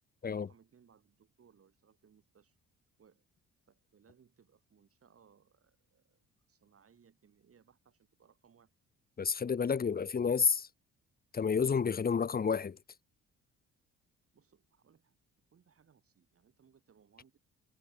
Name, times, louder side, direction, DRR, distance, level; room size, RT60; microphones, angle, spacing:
voice 1, 0.3-2.6 3.0-3.3 3.7-6.2 6.5-8.7 14.3-15.2 15.5-17.4, right 7 dB, 50° right, 7.2 m, -66 dB
voice 2, 9.2-10.7 11.3-12.8, left 6 dB, 30° left, 1.0 m, -30 dB
cardioid pair, 90°, 30 cm